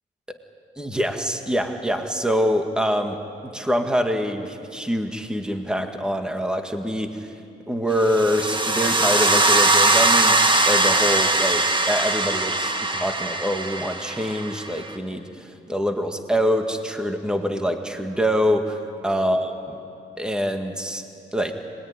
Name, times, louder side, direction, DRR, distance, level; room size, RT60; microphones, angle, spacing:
voice 1, 0.8-7.3 7.7-19.5 20.2-21.1 21.3-21.5, equal, 5° right, 5 dB, 1.9 m, -25 dB
sound 1, 8.0-14.9, right 2 dB, 25° right, 1.9 m, -21 dB
25.0 x 20.5 x 9.8 m, 2.5 s
cardioid pair, 90°, 20 cm